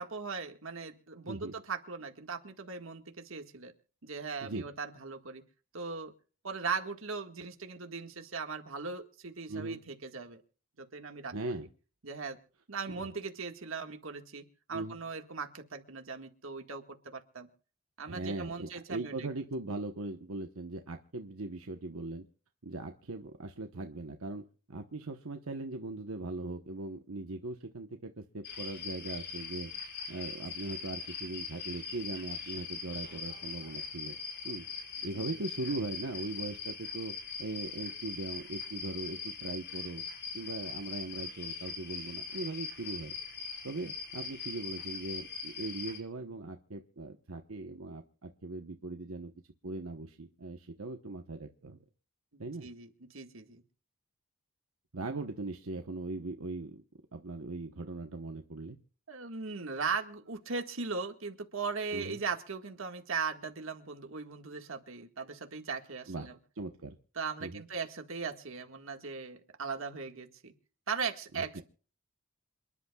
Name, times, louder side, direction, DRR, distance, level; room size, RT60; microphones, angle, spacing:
voice 1, 0.0-3.7 4.0-5.4 5.7-6.1 6.4-10.4 10.8-11.7 12.0-12.4 12.7-14.4 14.7-17.5 18.0-19.3 35.1-35.2 52.3-53.6 59.1-66.3 67.2-70.5 70.9-71.6, right 5 dB, 70° right, 5 dB, 1.8 m, -39 dB
voice 2, 9.5-9.8 11.3-11.7 14.7-15.0 18.1-22.2 22.6-29.7 30.1-34.2 34.4-37.1 37.4-40.0 40.3-43.1 43.6-49.3 49.6-51.8 52.4-52.7 54.9-56.8 57.1-58.8 61.9-62.2 66.1-66.3 66.5-67.0 67.4-67.6 71.3-71.6, right 2 dB, 85° right, 5 dB, 1.1 m, -40 dB
sound 1, 28.4-46.0, left 5 dB, 55° left, 5.4 m, -41 dB
28.0 x 11.0 x 2.4 m, 0.40 s
head